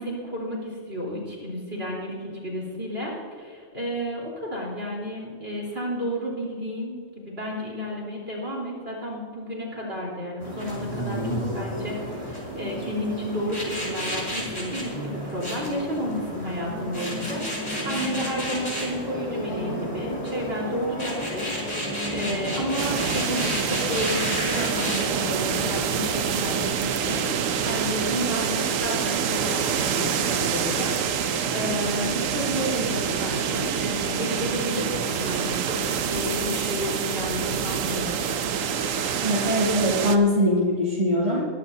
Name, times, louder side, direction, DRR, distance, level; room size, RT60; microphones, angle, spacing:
voice 1, 0.0-38.2, equal, 50° right, -3 dB, 4.2 m, -32 dB
sound 1, 10.4-26.7, equal, 20° left, 3.9 m, -31 dB
sound 2, 22.8-40.2, right 7 dB, 90° right, 1.2 m, -26 dB
voice 2, 39.2-41.5, left 1 dB, 35° right, -8 dB, 2.7 m, -22 dB
21.5 x 11.5 x 2.8 m, 2.1 s
omnidirectional pair, 1.3 m